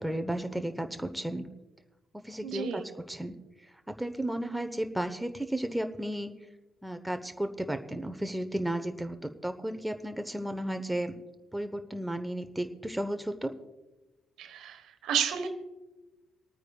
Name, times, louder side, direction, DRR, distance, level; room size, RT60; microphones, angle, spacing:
voice 1, 0.0-1.4 2.2-2.8 3.1-3.3 4.0-6.3 6.8-11.1 11.5-13.5, right 1 dB, 5° right, 7 dB, 1.0 m, -33 dB
voice 2, 2.4-2.8 14.4-15.5, right 8 dB, 70° right, 7 dB, 1.2 m, -31 dB
27.0 x 9.3 x 2.4 m, 1.1 s
hypercardioid pair, 45°, 0 cm